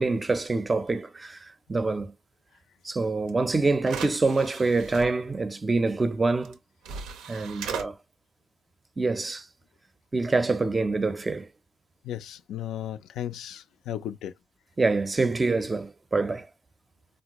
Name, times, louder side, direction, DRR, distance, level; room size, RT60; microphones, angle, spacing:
voice 1, 0.0-1.4 1.7-2.1 2.8-6.6 7.3-7.9 9.0-9.4 10.1-11.5 14.8-16.5, right 3 dB, 25° right, 0.5 m, -25 dB
sound 1, 3.3-3.4 3.8-5.1 6.4-6.5 6.8-7.9, right 7 dB, 75° right, 0.5 m, -37 dB
voice 2, 12.0-14.3, left 11 dB, 70° left, 0.3 m, -35 dB
3.8 x 2.0 x 2.9 m
supercardioid pair, 60°, 0 cm